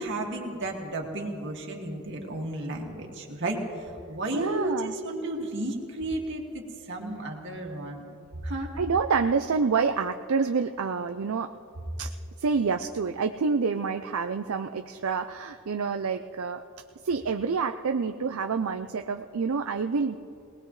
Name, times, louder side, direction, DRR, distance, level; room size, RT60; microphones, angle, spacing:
voice 1, 0.0-3.6 4.1-8.1 8.4-8.7, right 1 dB, 60° right, 0 dB, 2.1 m, -33 dB
voice 2, 4.3-4.9 8.8-11.5 12.0-12.1 12.4-16.6 17.0-20.2, right 5 dB, 75° right, 6 dB, 0.5 m, -27 dB
23.0 x 19.0 x 3.2 m, 2.4 s
head